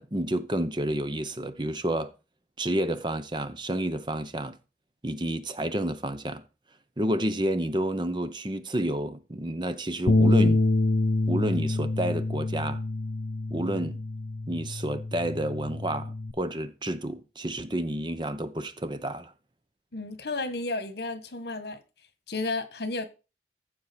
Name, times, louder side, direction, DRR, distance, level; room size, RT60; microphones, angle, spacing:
voice 1, 0.0-2.1 2.6-4.6 5.0-6.4 7.0-10.6 11.3-12.8 13.5-14.0 14.5-19.3, right 1 dB, 25° right, 0.8 m, -30 dB
Bass guitar, 10.1-16.3, left 2 dB, 50° left, 0.7 m, -26 dB
voice 2, 19.9-21.8 22.3-23.1, left 2 dB, 70° left, 1.4 m, -32 dB
14.5 x 7.1 x 4.4 m
head